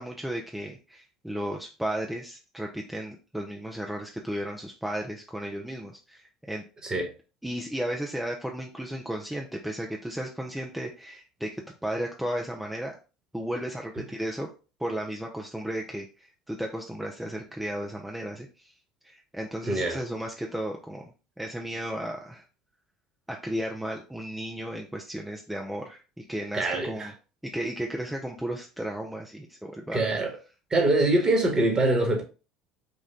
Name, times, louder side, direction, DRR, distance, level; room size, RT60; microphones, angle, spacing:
voice 1, 0.0-6.6 7.4-11.5 11.8-13.0 13.3-14.5 14.8-18.7 19.0-21.0 21.4-22.4 23.3-27.1 27.4-30.0, right 1 dB, 5° right, 0.8 m, -34 dB
voice 2, 19.6-20.0 26.5-27.1 29.9-30.4 30.7-32.2, right 2 dB, 30° right, 1.7 m, -24 dB
5.4 x 2.5 x 3.8 m
hypercardioid pair, 65°, 3 cm